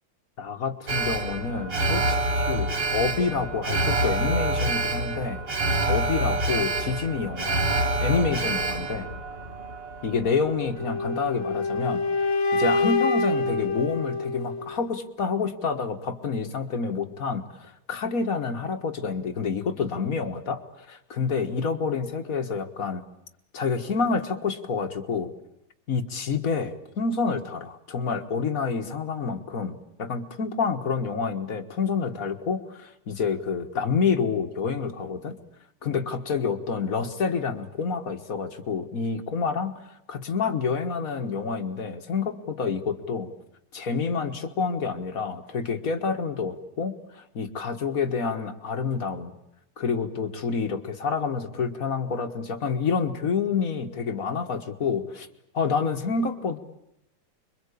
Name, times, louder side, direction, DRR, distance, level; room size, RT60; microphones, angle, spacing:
voice 1, 0.4-5.4 5.9-7.7 8.0-9.1 10.0-12.1 12.5-23.0 23.5-25.3 25.9-35.4 35.8-39.8 40.1-43.3 43.7-49.3 49.8-55.3 55.5-56.6, left 5 dB, 45° left, 7 dB, 1.8 m, -28 dB
Alarm, 0.9-11.1 11.5-11.6, right 2 dB, 30° right, 1.6 m, -27 dB
sound 1, 10.8-14.8, left 3 dB, 80° left, 2.7 m, -26 dB
26.0 x 23.0 x 8.4 m, 0.80 s
omnidirectional pair, 2.2 m